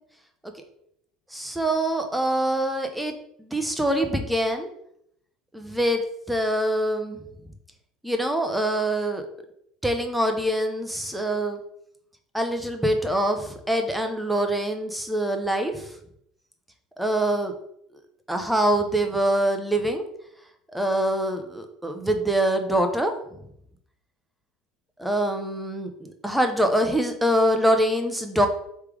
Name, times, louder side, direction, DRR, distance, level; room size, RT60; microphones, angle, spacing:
voice 1, 1.3-3.1 3.4-4.7 5.5-6.0 6.3-7.2 8.0-9.3 9.8-11.6 12.3-15.9 17.0-17.5 18.3-20.0 20.7-23.1 25.0-28.5, right 1 dB, 5° right, 5 dB, 0.8 m, -24 dB
3.3 x 3.3 x 4.8 m, 0.73 s
supercardioid pair, 90°, 0 cm